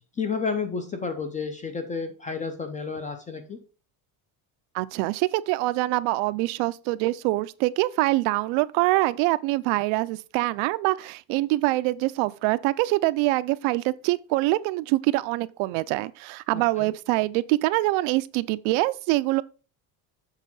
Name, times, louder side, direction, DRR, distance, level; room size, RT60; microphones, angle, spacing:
voice 1, 0.2-3.6 16.5-16.9, left 5 dB, 20° left, 0.3 m, -31 dB
voice 2, 4.7-19.4, right 19 dB, 70° right, 0.6 m, -24 dB
7.4 x 3.6 x 5.4 m
cardioid pair, 160°, 48 cm